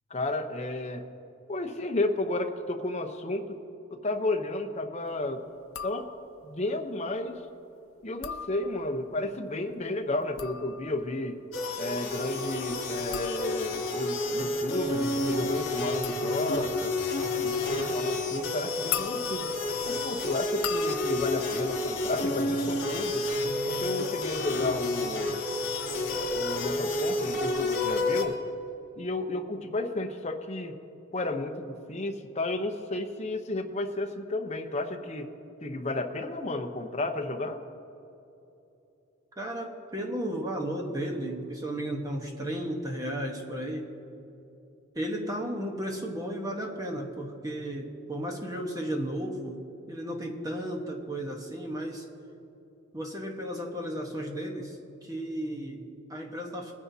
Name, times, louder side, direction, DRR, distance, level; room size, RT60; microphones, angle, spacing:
voice 1, 0.1-1.0 1.5-3.6 3.9-5.4 5.8-6.1 6.4-7.4 8.0-11.4 11.8-16.9 17.4-19.5 19.8-23.3 23.7-25.4 26.3-28.4 29.0-30.8 31.1-35.3 35.6-37.6, left 2 dB, 30° left, 4 dB, 0.8 m, -32 dB
sound 1, 5.6-6.5 8.0-9.1 10.1-22.8 23.1-23.6, left 9 dB, 80° left, 0.6 m, -41 dB
sound 2, 11.5-28.2, left 2 dB, 60° left, 3.0 m, -30 dB
voice 2, 39.4-43.9 44.9-52.1 52.9-56.7, right 1 dB, 15° right, 1 dB, 1.1 m, -34 dB
21.5 x 9.9 x 2.8 m, 2.9 s
head